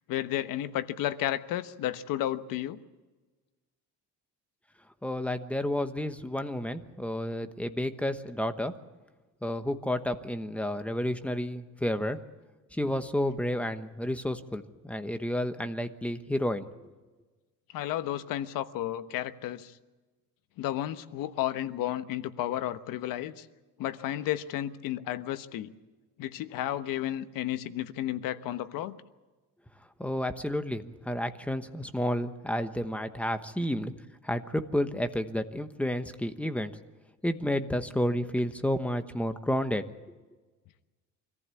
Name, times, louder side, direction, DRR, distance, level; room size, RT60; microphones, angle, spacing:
voice 1, 0.1-2.8 17.7-19.8 20.6-23.5 23.8-25.7 26.2-28.9, left 12 dB, 85° left, 11 dB, 1.2 m, -32 dB
voice 2, 5.0-8.7 9.4-12.2 12.7-16.7 30.0-33.9 34.2-36.7 37.2-39.9, left 1 dB, 5° left, 8 dB, 1.0 m, -31 dB
25.0 x 15.0 x 8.4 m, 1.3 s
cardioid pair, 150°, 32 cm